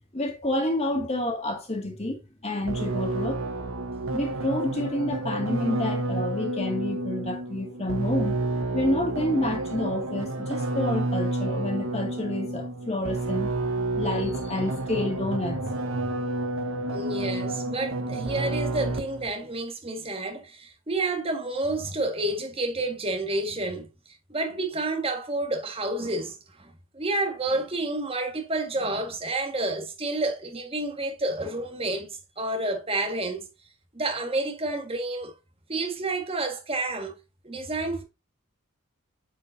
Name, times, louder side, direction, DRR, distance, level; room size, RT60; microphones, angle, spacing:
voice 1, 0.1-3.4 4.1-8.4 8.7-13.5 14.0-15.7, left 1 dB, 30° left, 2.1 m, -29 dB
sound 1, 2.7-19.3, right 2 dB, 65° right, 1.1 m, -30 dB
voice 2, 16.9-23.9 24.3-33.5 33.9-35.3 35.7-37.2 37.4-38.0, right 2 dB, 25° right, 1.7 m, -30 dB
8.9 x 5.3 x 2.7 m
head